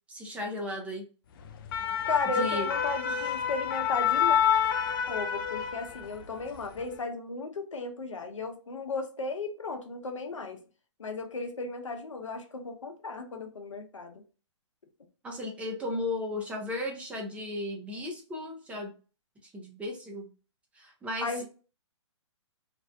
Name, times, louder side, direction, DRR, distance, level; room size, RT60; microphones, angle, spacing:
voice 1, 0.1-1.1 2.3-2.7 3.1-3.2 15.2-18.9 19.4-20.3 20.7-21.4, left 1 dB, 10° right, 0 dB, 0.5 m, -35 dB
sound 1, 1.5-6.2 6.6-6.8, left 8 dB, 45° left, 0.4 m, -28 dB
voice 2, 2.1-4.4 5.1-10.6 11.0-14.2 21.2-21.4, left 3 dB, 90° left, 5 dB, 0.7 m, -35 dB
2.5 x 2.1 x 2.5 m, 0.35 s
hypercardioid pair, 135°, 16 cm